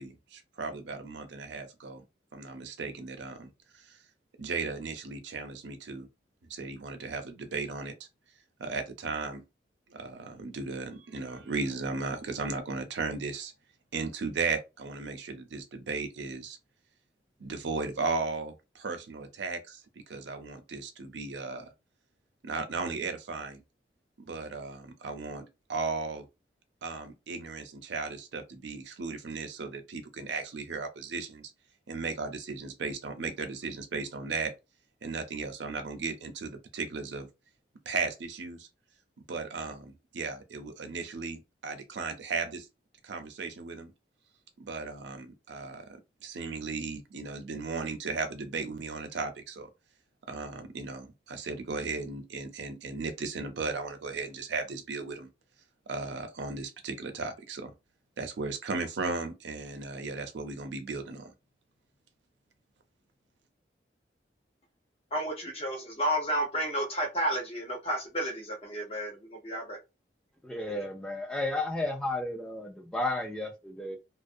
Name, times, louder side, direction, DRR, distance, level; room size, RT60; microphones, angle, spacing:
voice 1, 0.0-2.0 2.3-3.5 4.4-6.1 6.5-7.9 8.6-9.4 9.9-13.5 13.9-16.6 17.4-19.8 20.1-21.7 22.4-23.6 24.3-25.4 25.7-26.2 26.8-31.5 31.9-34.5 35.0-37.3 37.9-38.7 39.3-42.7 43.0-43.9 44.6-49.7 50.3-55.3 55.9-57.7 58.2-61.3, right 4 dB, 80° right, 0.5 m, -36 dB
voice 2, 65.1-69.8, equal, 35° left, 0.7 m, -31 dB
voice 3, 70.4-74.0, left 2 dB, 5° left, 0.4 m, -33 dB
2.4 x 2.0 x 2.5 m
head